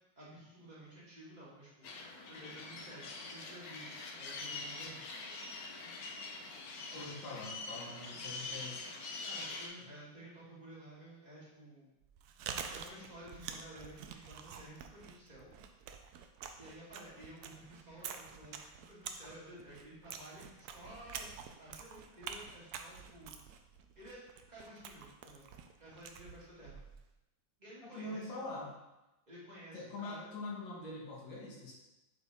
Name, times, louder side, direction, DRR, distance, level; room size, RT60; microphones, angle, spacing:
voice 1, 0.2-3.9 4.2-5.0 9.2-11.9 12.7-15.5 16.6-21.3 21.6-23.3 24.0-24.2 24.5-26.8 27.6-28.4 29.3-30.3, right 1 dB, 20° right, -8 dB, 2.1 m, -53 dB
sound 1, 1.8-9.7, left 3 dB, 60° left, 1.2 m, -44 dB
voice 2, 6.9-8.9 27.8-28.7 29.7-31.7, left 2 dB, 75° left, -4 dB, 2.3 m, -44 dB
Chewing mastication, 12.0-27.1, right 7 dB, 70° right, 0.9 m, -48 dB
7.6 x 4.3 x 3.5 m, 0.96 s
omnidirectional pair, 2.0 m